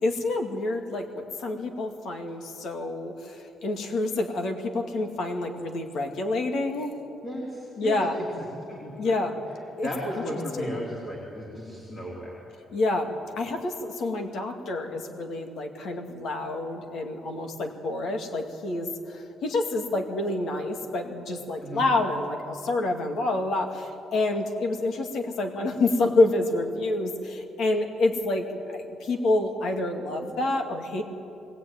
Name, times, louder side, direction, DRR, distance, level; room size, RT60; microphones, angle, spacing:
voice 1, 0.0-6.9 7.8-8.1 9.0-9.3 9.8-9.9 10.5-10.8 12.7-31.0, left 2 dB, 55° left, 4 dB, 2.3 m, -28 dB
voice 2, 7.2-8.3 8.7-9.1 9.5-12.4 21.6-21.9, equal, 25° left, -4 dB, 3.7 m, -35 dB
21.0 x 19.0 x 9.3 m, 2.8 s
cardioid pair, 175°, 0 cm